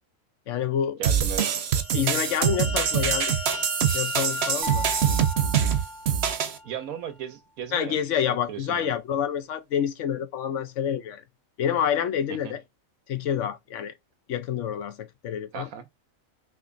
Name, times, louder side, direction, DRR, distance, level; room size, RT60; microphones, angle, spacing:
voice 1, 0.5-1.0 1.9-3.3 3.9-4.9 7.7-11.2 11.6-12.6 13.1-13.9 14.3-15.7, left 9 dB, 65° left, 0.9 m, -28 dB
sound 1, 1.0-6.6, right 8 dB, 55° right, 0.8 m, -24 dB
voice 2, 1.0-1.6 6.6-8.0 8.3-8.9 12.4-12.5 15.5-15.9, right 9 dB, 90° right, 1.3 m, -36 dB
sound 2, 1.6-6.0, left 1 dB, 45° left, 1.4 m, -37 dB
sound 3, 4.6-6.8, left 1 dB, 40° right, 0.3 m, -36 dB
6.0 x 2.9 x 2.6 m
omnidirectional pair, 1.4 m